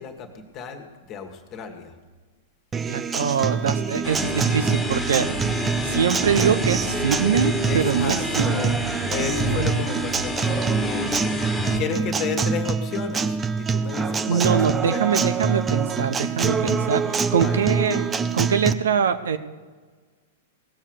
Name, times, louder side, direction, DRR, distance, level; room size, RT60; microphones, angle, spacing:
voice 1, 0.0-1.9 7.7-8.8 9.1-11.1 11.7-14.6 14.8-15.0 17.4-17.6, left 7 dB, 35° left, 5 dB, 2.0 m, -33 dB
Acoustic guitar, 2.7-18.7, right 5 dB, 20° right, 0.6 m, -25 dB
voice 2, 2.9-5.3 5.8-8.7 9.3-9.7 12.2-12.3 14.3-19.4, right 7 dB, 65° right, 11 dB, 0.8 m, -24 dB
sound 1, 4.0-11.8, left 1 dB, 5° left, 1.9 m, -29 dB
18.0 x 7.4 x 8.2 m, 1.4 s
figure-of-eight pair, 100°, 0 cm